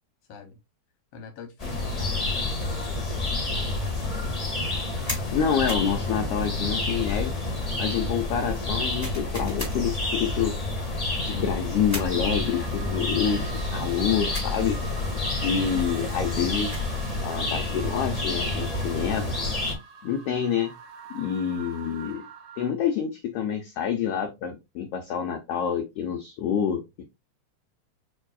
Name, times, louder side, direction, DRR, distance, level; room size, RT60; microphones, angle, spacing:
voice 1, 1.1-3.4, left 5 dB, 70° left, 5 dB, 1.4 m, -43 dB
sound 1, 1.6-19.7, left 2 dB, 50° left, 0.4 m, -29 dB
sound 2, 5.1-5.3 5.7-5.9 9.0-9.8 11.9-12.2 14.3-14.6 16.4-16.9, equal, 10° right, 0.8 m, -35 dB
voice 2, 5.3-7.3 7.8-10.6 11.2-14.8 15.4-16.8 17.2-19.3 20.0-20.7 21.1-22.2 22.6-27.0, left 8 dB, 90° left, 4 dB, 1.3 m, -27 dB
sound 3, 12.0-22.7, right 6 dB, 70° right, 1.3 m, -44 dB
6.9 x 2.7 x 2.3 m, 0.22 s
omnidirectional pair, 3.5 m